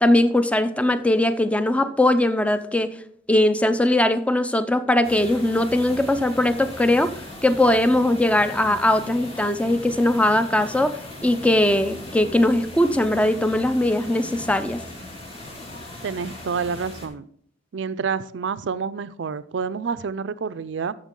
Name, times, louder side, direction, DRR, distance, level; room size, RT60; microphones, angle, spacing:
voice 1, 0.0-2.9 3.3-7.1 7.4-14.8, left 1 dB, 5° left, 11 dB, 0.5 m, -20 dB
sound 1, 5.0-17.1, left 1 dB, 35° left, 2.1 m, -38 dB
voice 2, 16.0-17.2 17.7-20.9, right 5 dB, 75° right, 15 dB, 0.4 m, -28 dB
13.5 x 6.5 x 3.7 m, 0.64 s
head